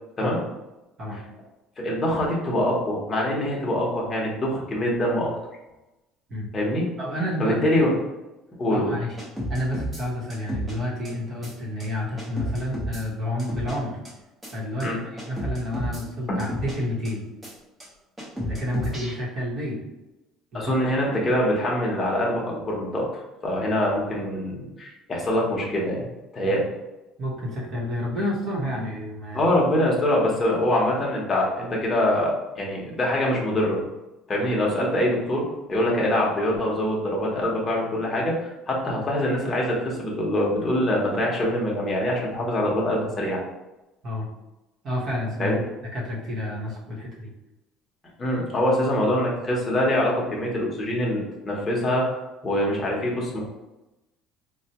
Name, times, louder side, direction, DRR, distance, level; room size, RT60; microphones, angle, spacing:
voice 1, 1.8-5.3 6.5-6.9 7.4-7.9 8.6-8.9 14.8-15.0 16.3-16.4 20.5-26.1 26.3-26.7 29.3-33.8 34.3-35.4 35.7-38.3 38.7-43.4 45.4-45.6 48.2-53.4, left 1 dB, 20° left, -3 dB, 0.9 m, -24 dB
voice 2, 7.0-7.6 8.7-9.2 9.5-14.0 14.5-17.3 18.4-19.8 20.5-20.7 26.4-26.6 27.2-29.5 44.0-44.3 44.8-45.6 45.9-47.3, left 1 dB, 40° right, -3 dB, 1.0 m, -30 dB
sound 1, 9.2-10.0 10.3-10.7 11.0-11.1 11.4-11.5 11.8-11.9 12.2-13.0 13.4-13.7 14.0-14.1 14.4-14.5 14.8-14.9 15.2-16.0 16.4-16.8 17.0-17.1 17.4-17.5 17.8-17.9 18.2-19.1, equal, 10° right, 0.9 m, -31 dB
4.4 x 2.2 x 2.8 m, 1.0 s
cardioid pair, 145°, 0 cm